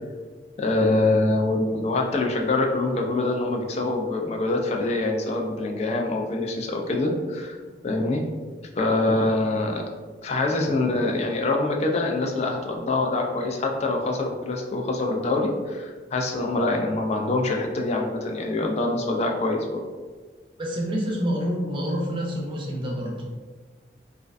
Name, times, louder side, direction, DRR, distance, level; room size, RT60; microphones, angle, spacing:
voice 1, 0.6-7.6 7.8-8.2 8.8-9.8 10.2-19.8, left 2 dB, 35° left, 2 dB, 0.3 m, -25 dB
voice 2, 20.6-23.2, equal, 30° right, -2 dB, 0.5 m, -27 dB
2.4 x 2.2 x 2.4 m, 1.4 s
head